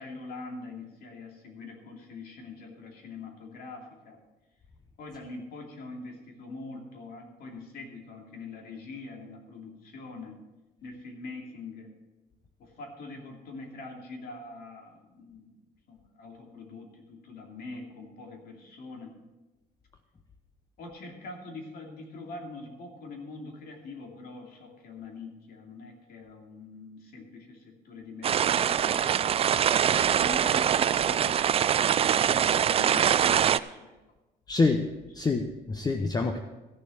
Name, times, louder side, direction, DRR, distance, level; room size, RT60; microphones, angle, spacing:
voice 1, 0.0-4.2 5.0-10.4 10.8-11.9 12.6-15.5 15.9-19.1 20.8-29.5 30.1-34.0 35.2-35.3, left 3 dB, 65° left, 1 dB, 2.7 m, -44 dB
sound 1, 28.2-33.6, right 9 dB, 35° right, 0.4 m, -23 dB
voice 2, 34.5-34.9 35.1-36.4, left 3 dB, 25° left, 5 dB, 0.8 m, -26 dB
14.0 x 6.7 x 6.4 m, 1.1 s
cardioid pair, 110°, 17 cm